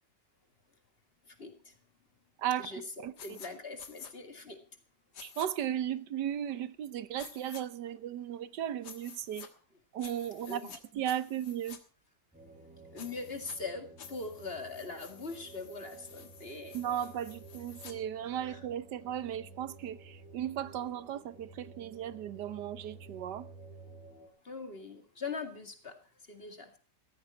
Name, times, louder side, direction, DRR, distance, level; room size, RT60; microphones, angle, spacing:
voice 1, 1.3-1.8 2.6-4.6 10.5-10.7 12.9-16.8 18.5-18.6 24.4-26.0 26.3-26.8, left 4 dB, 35° left, 2.4 m, -42 dB
voice 2, 2.4-2.7 3.0-3.4 5.2-9.5 9.9-10.6 10.9-11.8 16.7-23.5, right 10 dB, 90° right, 1.5 m, -36 dB
sound 1, 3.2-3.5 3.8-4.1 5.1-5.5 7.2-7.6 8.8-9.5 10.0-10.8 11.0-11.8 13.0-13.5 14.0-17.9, left 7 dB, 85° left, 2.1 m, -51 dB
sound 2, 12.3-24.3, right 3 dB, 5° right, 4.3 m, -52 dB
15.5 x 14.0 x 4.4 m
omnidirectional pair, 1.8 m